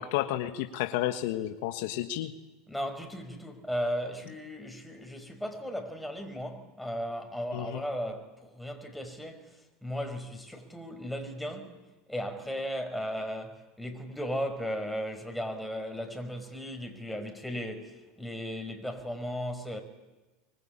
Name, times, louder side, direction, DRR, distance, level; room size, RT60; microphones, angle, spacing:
voice 1, 0.0-2.3 7.5-7.8, left 13 dB, 70° left, 1.5 m, -31 dB
voice 2, 2.7-11.8 12.1-19.8, equal, ahead, 5.3 m, -36 dB
25.0 x 20.5 x 8.8 m
hypercardioid pair, 100°, 0 cm